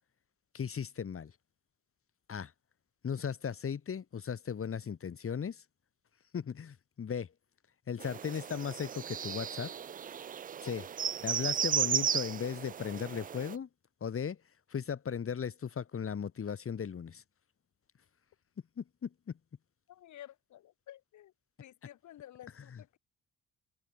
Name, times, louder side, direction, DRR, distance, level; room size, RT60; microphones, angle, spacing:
voice 1, 0.5-1.3 2.3-2.5 3.0-5.6 6.3-7.3 7.9-9.7 10.6-10.8 11.2-13.7 14.0-14.4 14.7-17.2 18.8-19.1 22.5-22.8, left 7 dB, 45° left, 3.8 m, -37 dB
sound 1, 8.0-13.5, right 8 dB, 30° right, 0.4 m, -35 dB
voice 2, 19.9-21.3 21.6-23.0, left 12 dB, 70° left, 1.7 m, -52 dB
cardioid pair, 90°, 30 cm